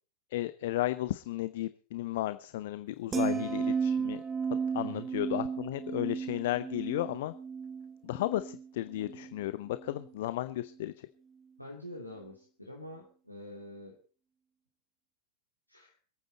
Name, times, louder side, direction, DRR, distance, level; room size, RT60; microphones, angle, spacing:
voice 1, 0.3-4.2 4.7-7.3 8.0-10.9, left 15 dB, 55° left, 13 dB, 0.7 m, -34 dB
sound 1, 3.1-9.4 9.7-10.1, right 6 dB, 20° right, 1.6 m, -34 dB
voice 2, 3.2-3.5 4.8-5.1 11.6-14.0 15.7-16.0, equal, 90° left, -2 dB, 2.6 m, -44 dB
26.0 x 9.2 x 4.3 m, 0.40 s
figure-of-eight pair, 90°, 0 cm